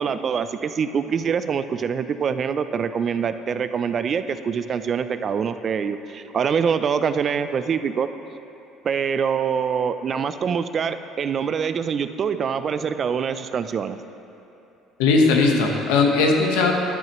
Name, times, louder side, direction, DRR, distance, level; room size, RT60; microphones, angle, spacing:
voice 1, 0.0-8.1 8.8-14.0, right 6 dB, 45° right, 11 dB, 0.4 m, -24 dB
voice 2, 15.0-16.7, left 3 dB, 90° left, 1 dB, 1.1 m, -18 dB
11.0 x 8.8 x 3.0 m, 2.9 s
supercardioid pair, 95°, 0 cm